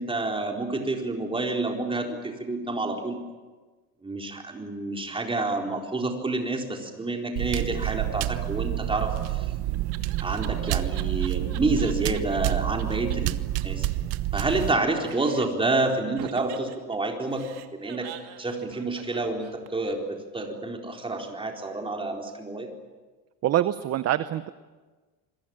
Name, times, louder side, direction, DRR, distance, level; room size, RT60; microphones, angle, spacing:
voice 1, 0.0-3.2 4.0-9.5 10.2-13.4 13.6-13.9 14.3-17.4 17.8-18.1 18.4-22.7, right 2 dB, 15° right, 2 dB, 4.1 m, -28 dB
sound 1, 7.4-14.7, right 15 dB, 60° right, 1.1 m, -28 dB
Laughter, 9.4-12.2 12.5-12.6 12.8-12.9 13.1-13.2 13.4-14.8 15.0-15.7 16.2-19.9, right 13 dB, 75° right, 2.5 m, -43 dB
voice 2, 23.4-24.5, right 12 dB, 40° right, 13 dB, 0.8 m, -25 dB
27.5 x 22.0 x 8.9 m, 1.3 s
cardioid pair, 145°, 41 cm